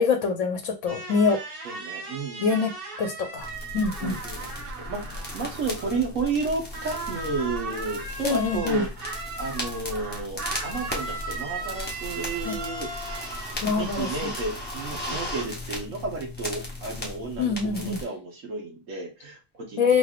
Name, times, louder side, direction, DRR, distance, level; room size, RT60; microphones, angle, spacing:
voice 1, 0.0-1.4 2.4-2.7 3.0-3.5 3.7-4.2 8.2-8.8 12.4-12.6 13.6-14.3 17.4-18.0 19.8-20.0, left 5 dB, 70° left, 4 dB, 1.0 m, -24 dB
sound 1, 0.9-6.5 6.7-14.1, right 3 dB, 45° right, 1.0 m, -37 dB
voice 2, 1.6-2.6 4.0-8.9 9.4-12.9 13.7-19.8, right 3 dB, 65° right, 0 dB, 1.5 m, -32 dB
sound 2, 3.4-18.0, left 1 dB, 10° left, 0.7 m, -36 dB
3.9 x 3.3 x 2.4 m, 0.29 s
omnidirectional pair, 1.5 m